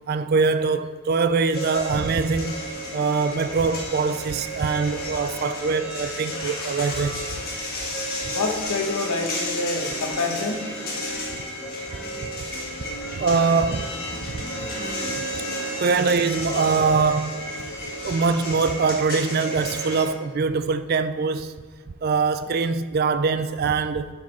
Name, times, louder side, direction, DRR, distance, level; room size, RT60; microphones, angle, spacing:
voice 1, 0.1-2.6 2.9-7.2 8.2-8.3 13.1-13.9 14.3-14.4 15.1-15.2 15.8-17.4 18.0-21.5 22.0-24.1, right 4 dB, 45° right, 0.3 m, -23 dB
sound 1, 1.5-20.1, equal, 40° left, 1.5 m, -32 dB
voice 2, 8.3-10.6, left 3 dB, 75° left, 1.1 m, -27 dB
7.4 x 4.9 x 5.9 m
head